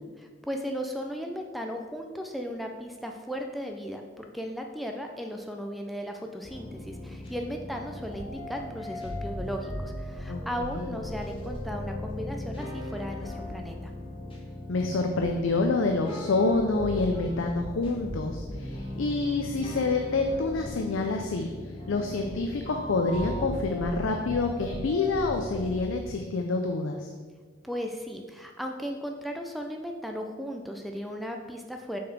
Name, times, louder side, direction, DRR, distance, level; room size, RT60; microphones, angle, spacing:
voice 1, 0.2-13.9 27.6-32.0, equal, ahead, 2 dB, 0.3 m, -36 dB
sound 1, 6.4-25.8, left 1 dB, 25° left, 1.1 m, -38 dB
voice 2, 10.3-10.9 14.7-21.5 21.9-27.1, left 3 dB, 85° left, 4 dB, 0.5 m, -27 dB
6.1 x 4.1 x 4.5 m, 1.5 s
head